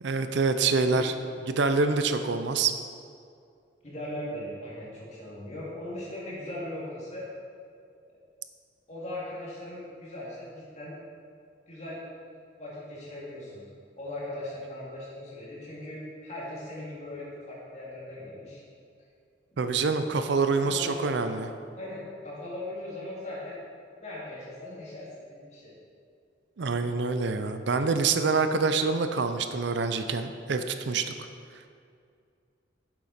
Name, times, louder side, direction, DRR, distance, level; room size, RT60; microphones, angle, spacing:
voice 1, 0.0-1.1 1.5-2.7 19.6-21.5 26.6-31.1, right 4 dB, 70° right, 9 dB, 0.5 m, -26 dB
voice 2, 3.8-7.2 8.9-11.0 11.7-12.0 12.6-13.6 14.0-18.6 19.5-19.6 20.6-21.0 21.8-23.6 24.0-25.7, left 1 dB, 35° left, -6 dB, 2.3 m, -39 dB
8.9 x 7.5 x 4.1 m, 2.3 s
head